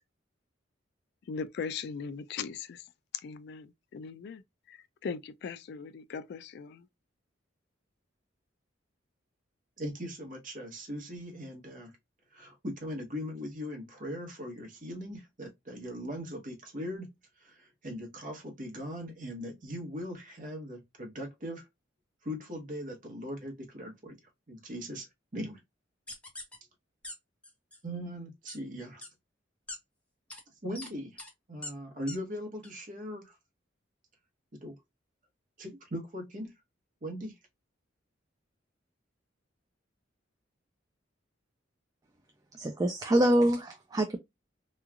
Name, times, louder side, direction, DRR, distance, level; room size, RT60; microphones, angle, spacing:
voice 1, 1.3-2.8 3.2-4.4 4.7-4.8 5.0-6.8, left 5 dB, 60° left, 0.3 m, -39 dB
voice 2, 9.8-11.9 12.3-17.1 17.4-21.7 22.2-24.2 24.5-25.1 25.3-25.6 27.8-29.0 30.6-31.2 31.5-33.4 34.6-34.8 35.6-36.5 37.0-37.3, equal, 45° right, 1.0 m, -39 dB
sound 1, 26.1-26.6 27.0-27.1 27.4-27.8 28.5-28.6 29.0-29.1 29.7-29.8 30.3-30.4 30.8-30.9 31.2-31.3 31.6-31.7 32.1-32.2 32.6-32.7, left 2 dB, 5° left, 0.8 m, -42 dB
voice 3, 42.5-44.2, right 1 dB, 20° right, 0.3 m, -25 dB
3.0 x 2.3 x 2.3 m
head